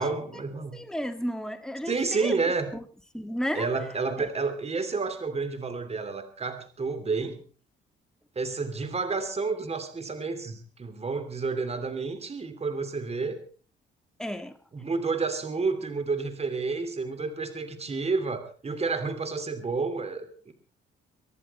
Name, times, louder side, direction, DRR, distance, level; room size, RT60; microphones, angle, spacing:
voice 1, 0.0-0.8 1.8-2.7 3.5-7.4 8.3-13.4 14.7-20.5, right 4 dB, 30° right, 10 dB, 3.0 m, -30 dB
voice 2, 0.7-2.3 3.1-3.7 4.2-4.3 14.2-14.5, equal, 5° left, 7 dB, 1.8 m, -32 dB
24.5 x 11.0 x 4.4 m, 0.41 s
cardioid pair, 90°, 20 cm